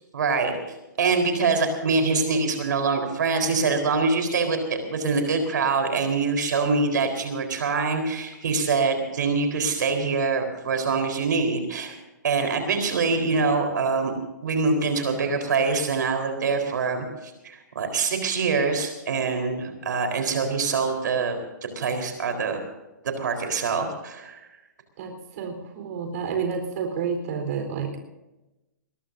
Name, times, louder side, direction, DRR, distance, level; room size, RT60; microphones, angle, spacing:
voice 1, 0.1-0.6 1.0-11.9 12.2-14.1 14.4-21.4 21.8-22.6 23.0-24.4, right 4 dB, 75° right, 5 dB, 4.1 m, -24 dB
voice 2, 25.0-28.0, right 6 dB, 50° right, 4 dB, 4.1 m, -30 dB
21.5 x 21.0 x 2.7 m, 1.0 s
hypercardioid pair, 145°, 10 cm